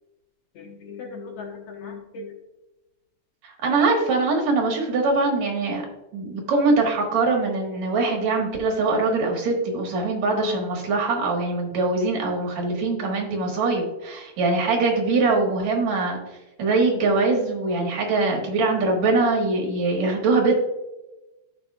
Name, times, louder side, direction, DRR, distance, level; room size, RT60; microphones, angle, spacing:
voice 1, 0.5-2.4 10.3-10.7, left 4 dB, 65° left, 1 dB, 2.0 m, -38 dB
voice 2, 3.4-5.9 6.1-16.2 16.6-20.5, right 3 dB, 70° right, 0 dB, 2.7 m, -22 dB
13.5 x 5.4 x 2.3 m, 1.0 s
omnidirectional pair, 3.4 m